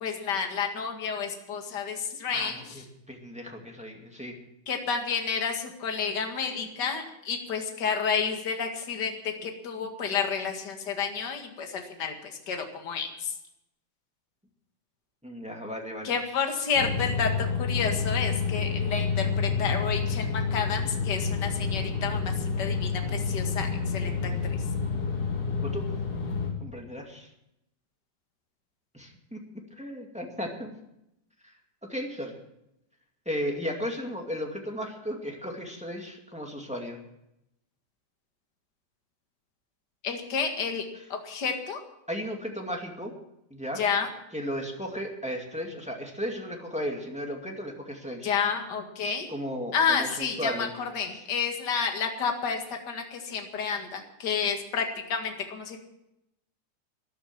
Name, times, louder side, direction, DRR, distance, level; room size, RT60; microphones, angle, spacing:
voice 1, 0.0-2.6 4.7-13.3 16.0-22.3 22.6-24.1 40.0-40.8 41.1-41.8 43.8-44.1 48.2-49.3 49.7-55.8, left 6 dB, 40° left, 4 dB, 2.2 m, -30 dB
voice 2, 2.3-4.4 15.2-16.1 25.6-25.9 26.6-27.3 28.9-29.4 29.8-30.7 31.9-32.3 33.3-37.0 42.1-43.1 43.5-43.8 44.3-48.3 49.3-50.7, equal, 5° right, 1 dB, 1.6 m, -35 dB
sound 1, 16.7-26.5, left 5 dB, 75° left, 4.6 m, -29 dB
13.5 x 11.5 x 7.4 m, 0.83 s
omnidirectional pair, 3.5 m